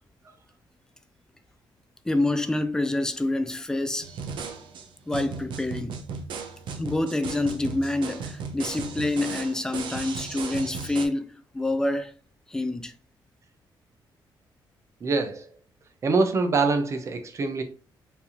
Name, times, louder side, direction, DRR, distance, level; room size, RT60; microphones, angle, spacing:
voice 1, 2.0-4.1 5.1-6.0 6.8-12.1 12.5-12.9, left 2 dB, 5° left, 0.4 m, -27 dB
sound 1, 4.0-11.1, right 5 dB, 75° right, 0.8 m, -36 dB
voice 2, 15.0-15.5 16.0-17.6, right 3 dB, 35° right, 0.7 m, -24 dB
4.6 x 3.4 x 2.8 m
cardioid pair, 160°, 8 cm